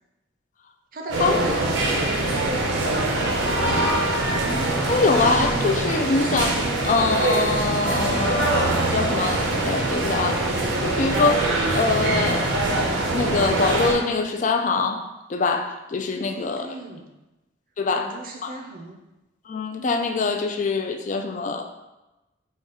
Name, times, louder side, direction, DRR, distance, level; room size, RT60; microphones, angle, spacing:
voice 1, 0.9-4.0 16.2-17.1 17.9-19.0, right 1 dB, 45° right, 2 dB, 0.6 m, -37 dB
sound 1, 1.1-13.9, right 2 dB, 80° right, 0.8 m, -23 dB
voice 2, 4.9-10.4 10.8-12.5 13.1-15.0 15.3-16.7 17.8-18.1 18.4-18.6 19.5-21.6, left 3 dB, 40° left, 6 dB, 0.3 m, -24 dB
4.2 x 2.3 x 4.7 m, 1.0 s
head